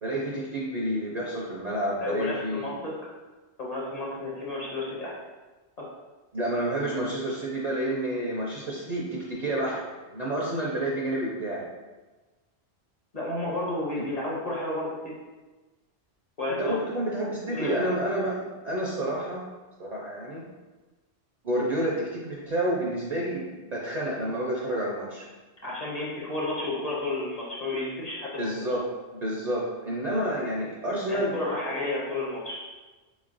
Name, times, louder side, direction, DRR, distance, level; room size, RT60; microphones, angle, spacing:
voice 1, 0.0-2.8 6.3-9.8 10.1-11.6 13.9-14.1 16.6-19.5 19.8-20.4 21.4-25.3 28.4-28.8 29.2-31.4, right 1 dB, 50° right, -4 dB, 0.5 m, -29 dB
voice 2, 2.0-3.0 3.6-5.2 5.8-5.9 13.1-15.2 16.4-16.8 17.5-17.7 25.6-28.7 31.1-32.6, left 2 dB, 40° left, -5 dB, 0.7 m, -32 dB
4.0 x 3.1 x 2.5 m, 1.2 s
omnidirectional pair, 1.2 m